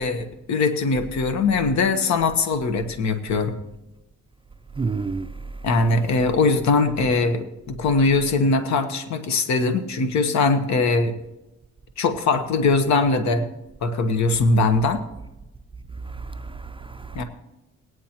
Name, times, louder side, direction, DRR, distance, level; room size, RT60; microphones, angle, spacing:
voice 1, 0.0-3.5 5.6-11.1 12.0-13.4 13.8-15.0 17.1-17.2, left 3 dB, 65° left, 1.1 m, -21 dB
voice 2, 4.8-5.3 16.0-17.2, right 4 dB, 20° right, 0.4 m, -30 dB
19.0 x 9.3 x 2.9 m
cardioid pair, 90°, 30 cm